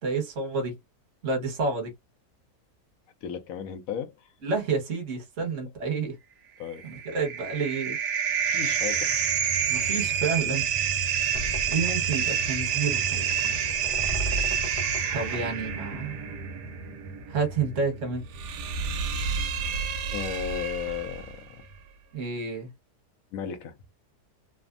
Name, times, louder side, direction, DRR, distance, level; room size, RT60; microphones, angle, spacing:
voice 1, 0.0-0.7 1.2-1.9 4.4-6.2 6.8-8.0 9.7-10.7 11.7-13.3 15.1-16.2 17.3-18.2 22.1-22.7, right 4 dB, 50° right, 1.5 m, -29 dB
voice 2, 3.2-4.3 6.6-6.9 8.5-9.2 9.8-10.0 20.1-21.6 23.3-23.8, left 9 dB, 70° left, 1.0 m, -35 dB
sound 1, 6.7-21.3, right 7 dB, 85° right, 1.3 m, -29 dB
sound 2, 11.3-16.3, equal, 90° left, 0.4 m, -38 dB
3.3 x 2.1 x 2.4 m
omnidirectional pair, 1.7 m